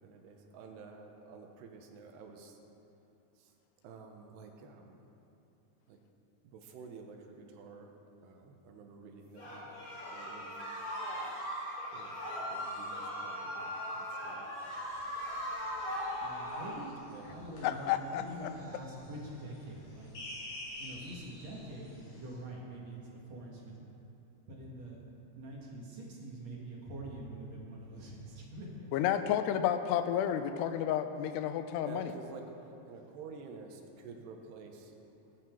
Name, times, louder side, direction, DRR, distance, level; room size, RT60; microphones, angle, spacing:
voice 1, 0.0-2.6 3.4-3.5 3.8-5.0 5.9-6.0 6.4-7.9 8.2-9.7 10.0-10.9 11.8-12.2 12.5-14.5 17.0-17.3 31.8-32.5 32.9-34.9, right 4 dB, 85° right, 3 dB, 3.2 m, -50 dB
sound 1, 9.4-16.8, equal, 30° left, 3.6 m, -39 dB
sound 2, 14.7-22.4, left 1 dB, 65° left, 4.8 m, -50 dB
voice 2, 16.2-20.1 20.8-23.0 23.3-23.7 24.5-25.0 25.4-28.9, right 1 dB, 50° right, -3 dB, 2.5 m, -45 dB
voice 3, 17.6-18.2 28.9-32.1, left 10 dB, 85° left, 10 dB, 2.8 m, -31 dB
20.0 x 9.9 x 4.6 m, 2.9 s
omnidirectional pair, 4.7 m